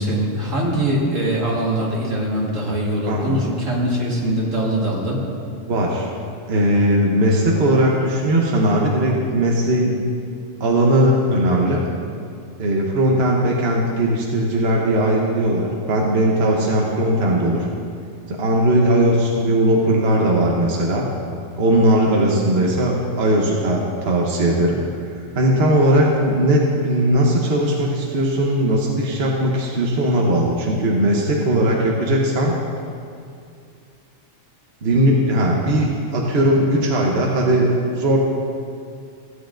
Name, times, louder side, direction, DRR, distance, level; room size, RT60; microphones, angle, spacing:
voice 1, 0.0-5.2, right 1 dB, 75° right, -4 dB, 2.1 m, -22 dB
voice 2, 3.0-3.4 5.6-6.1 6.5-10.0 10.6-11.8 12.6-17.7 18.3-21.0 21.6-24.8 25.3-32.6 34.8-38.2, right 1 dB, 55° right, -2 dB, 1.1 m, -18 dB
15.5 x 9.4 x 2.5 m, 2.4 s
omnidirectional pair, 1.3 m